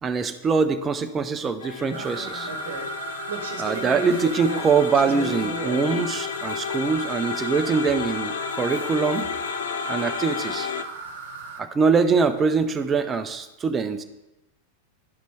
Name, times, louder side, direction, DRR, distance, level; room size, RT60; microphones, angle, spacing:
voice 1, 0.0-2.5 3.6-9.3 9.9-10.7 11.6-14.0, right 5 dB, 20° right, 9 dB, 0.5 m, -23 dB
sound 1, 1.6-10.8, left 8 dB, 60° left, 0.3 m, -32 dB
sound 2, 1.9-11.6, right 3 dB, 60° right, 1.0 m, -34 dB
10.5 x 5.1 x 3.3 m, 0.99 s
figure-of-eight pair, 90°, 0 cm